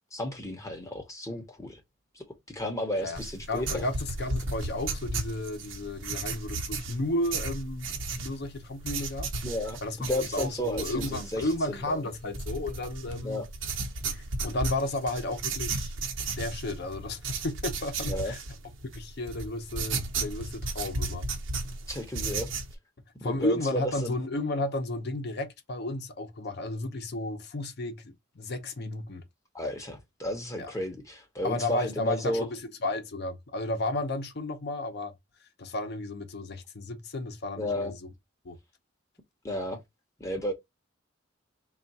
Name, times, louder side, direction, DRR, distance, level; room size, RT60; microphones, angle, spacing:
voice 1, 0.1-1.8 2.2-3.9 9.4-12.0 13.2-13.4 18.1-18.3 21.9-22.5 23.2-24.1 29.5-32.5 37.6-37.9 39.4-39.8 40.2-40.5, left 1 dB, 15° left, 0.8 m, -33 dB
sound 1, 3.2-22.7, right 3 dB, 75° right, 0.9 m, -35 dB
voice 2, 3.5-9.3 9.8-13.4 14.1-15.9 16.4-18.4 18.9-21.3 23.2-29.2 30.6-30.7 31.4-35.1 35.6-37.9 38.4-38.6, left 2 dB, 60° left, 0.8 m, -33 dB
3.4 x 2.4 x 4.0 m
head